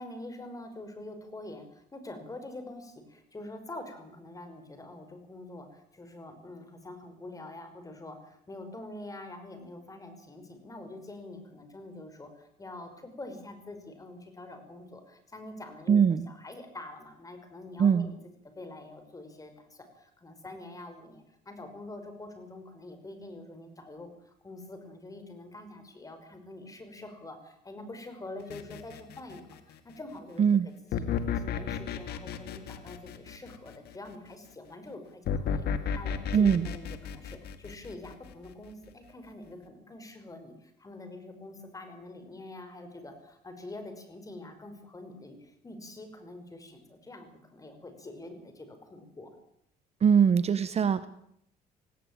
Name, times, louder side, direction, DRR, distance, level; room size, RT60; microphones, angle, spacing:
voice 1, 0.0-18.2 18.4-30.5 30.9-49.3, left 2 dB, 20° left, 7 dB, 5.5 m, -45 dB
voice 2, 15.9-16.3 17.8-18.1 30.4-30.7 36.3-36.7 50.0-51.1, right 7 dB, 40° right, 14 dB, 1.0 m, -22 dB
sound 1, 28.5-29.7 30.9-34.0 35.3-38.5, left 7 dB, 70° left, 2.1 m, -33 dB
18.5 x 17.0 x 9.0 m, 0.73 s
cardioid pair, 110°, 17 cm